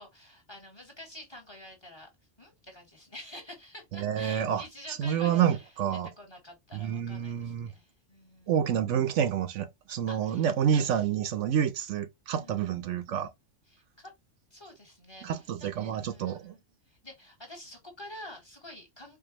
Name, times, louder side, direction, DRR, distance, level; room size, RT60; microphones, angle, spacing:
voice 1, 0.0-2.1 2.4-8.6 10.1-10.5 12.4-12.8 13.7-14.1 14.5-16.6 16.9-19.2, left 1 dB, 20° left, 1.5 m, -48 dB
voice 2, 3.9-6.1 6.7-7.7 8.5-13.3 15.2-16.6, right 9 dB, 75° right, 0.9 m, -28 dB
4.6 x 2.5 x 2.8 m
omnidirectional pair, 1.3 m